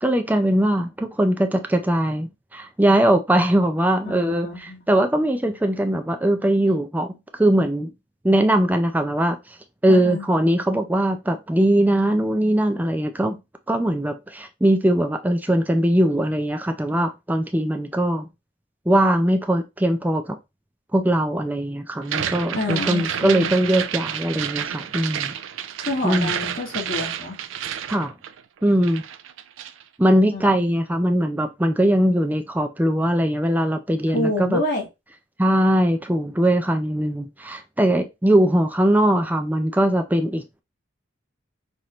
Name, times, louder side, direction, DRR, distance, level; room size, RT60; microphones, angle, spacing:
voice 1, 0.0-7.9 8.2-9.4 9.8-13.4 13.7-18.3 18.9-20.4 20.9-25.3 26.0-26.3 27.9-28.1 28.6-29.0 30.0-34.6 35.4-40.6, right 1 dB, 10° right, 0.4 m, -21 dB
voice 2, 4.0-4.8 9.9-10.2 22.5-23.6 25.8-27.4 30.3-30.7 34.1-34.9, left 2 dB, 50° left, 2.0 m, -28 dB
sound 1, 22.0-28.6 28.8-29.8, right 9 dB, 90° right, 0.4 m, -30 dB
5.8 x 2.6 x 3.1 m
head